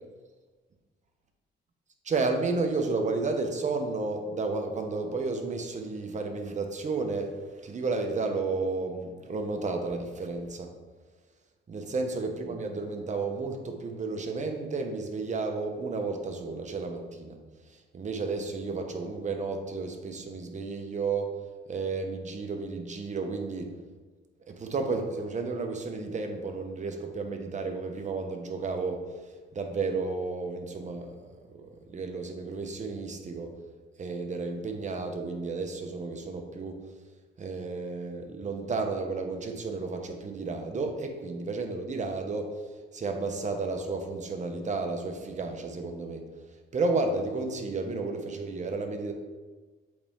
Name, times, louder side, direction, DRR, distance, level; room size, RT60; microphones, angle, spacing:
voice 1, 2.0-7.4 7.6-10.7 11.7-17.4 17.9-21.3 21.7-23.7 24.5-29.0 29.5-31.1 31.5-33.5 34.0-36.8 37.4-42.5 42.9-46.2 46.7-49.1, right 3 dB, 35° right, 4 dB, 1.0 m, -32 dB
7.7 x 4.3 x 3.7 m, 1.3 s
cardioid pair, 90°, 20 cm